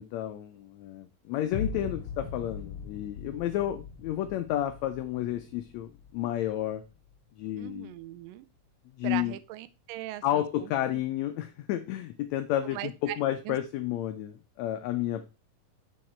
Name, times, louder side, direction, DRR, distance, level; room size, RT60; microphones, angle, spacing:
voice 1, 0.0-6.8 7.4-7.9 9.0-9.3 10.2-15.3, left 12 dB, 80° left, 1.6 m, -31 dB
sound 1, 1.5-7.5, left 5 dB, 60° left, 1.7 m, -41 dB
voice 2, 7.6-8.5 9.0-11.0 12.6-13.2 13.5-13.6, right 15 dB, 85° right, 2.3 m, -39 dB
6.4 x 5.9 x 4.3 m
omnidirectional pair, 3.8 m